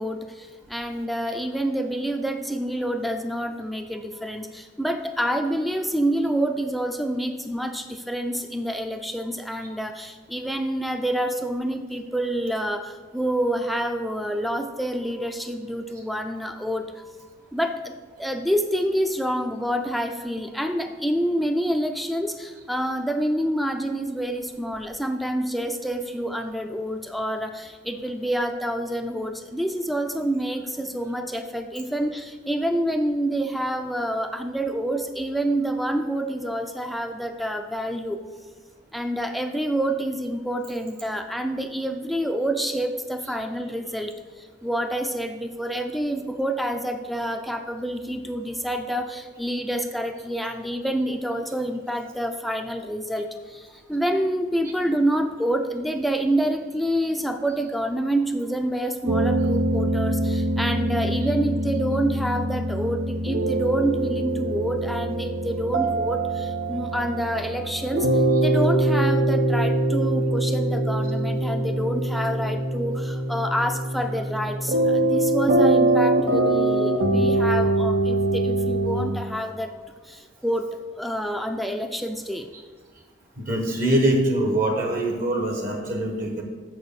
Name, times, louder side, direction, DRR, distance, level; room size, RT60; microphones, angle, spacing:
voice 1, 0.0-17.1 17.5-38.2 38.9-79.8 80.0-80.7 81.0-82.5, right 1 dB, ahead, 5 dB, 0.4 m, -27 dB
sound 1, 59.1-79.0, right 1 dB, 80° right, 0.9 m, -23 dB
voice 2, 83.4-86.4, right 1 dB, 50° right, 2 dB, 1.2 m, -23 dB
7.1 x 6.2 x 6.8 m, 1.4 s
head